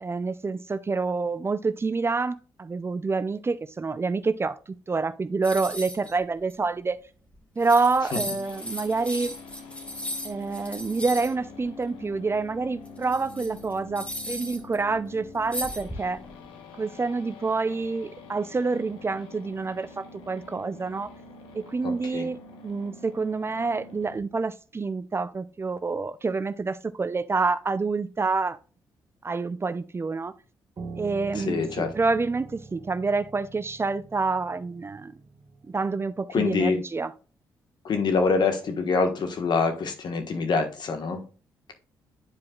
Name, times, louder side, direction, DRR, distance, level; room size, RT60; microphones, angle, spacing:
voice 1, 0.0-7.0 7.6-9.4 10.2-16.2 16.8-21.1 21.5-28.6 29.2-30.3 31.0-35.1 35.7-37.1, right 4 dB, 30° right, 0.5 m, -27 dB
sound 1, 5.4-6.1 6.5-6.6 7.3-7.4 7.6-11.3 12.8-14.8 15.5-16.3, left 1 dB, 15° left, 1.9 m, -36 dB
sound 2, 8.2-24.2, left 3 dB, 90° left, 1.1 m, -46 dB
voice 2, 21.8-22.3 31.3-31.9 36.3-36.8 37.8-41.2, left 4 dB, 65° left, 1.4 m, -25 dB
Piano, 30.8-36.0, right 4 dB, 45° right, 0.9 m, -44 dB
10.5 x 4.8 x 2.4 m
supercardioid pair, 60°, 8 cm